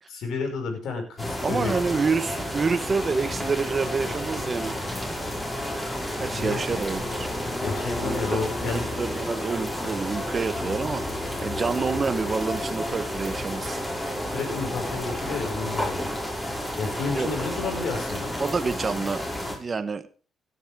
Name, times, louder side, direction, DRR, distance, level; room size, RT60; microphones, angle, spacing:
voice 1, 0.1-1.7 6.3-6.6 7.6-8.9 14.3-16.1 16.8-18.3, left 4 dB, 75° left, 3 dB, 5.6 m, -31 dB
sound 1, 1.2-19.6, left 1 dB, 15° left, 6.1 m, -31 dB
voice 2, 1.4-4.7 6.2-7.3 8.0-11.0 11.4-13.8 17.1-17.3 18.4-19.3 19.5-20.0, right 4 dB, 35° right, 10 dB, 1.1 m, -28 dB
17.0 x 9.9 x 3.6 m, 0.37 s
cardioid pair, 90°, 0 cm